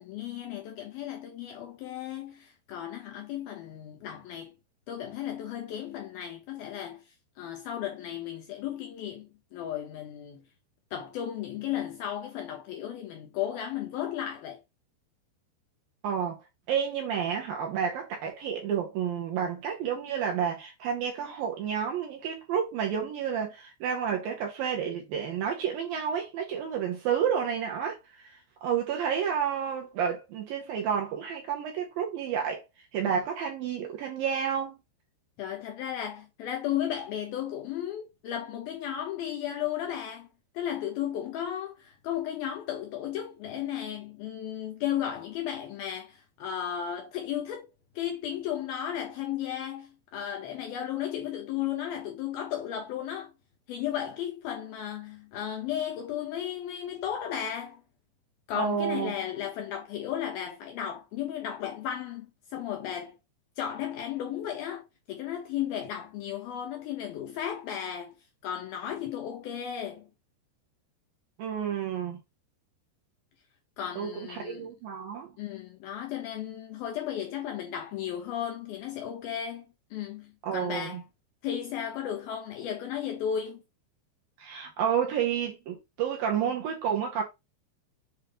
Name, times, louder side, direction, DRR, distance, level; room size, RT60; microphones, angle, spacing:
voice 1, 0.0-4.5 4.9-7.0 7.4-10.4 10.9-14.6 35.4-40.3 40.5-47.7 48.0-53.3 53.7-57.8 58.5-62.3 62.5-63.2 63.6-64.8 65.1-68.1 68.4-70.1 73.8-74.7 75.4-79.7 79.9-81.0 81.4-83.6, left 10 dB, 75° left, 2.3 m, -34 dB
voice 2, 16.0-32.6 32.9-34.8 58.6-59.1 71.4-72.2 74.0-75.3 80.4-81.0 84.4-87.2, right 8 dB, 70° right, 2.3 m, -30 dB
7.8 x 2.6 x 5.2 m
omnidirectional pair, 5.3 m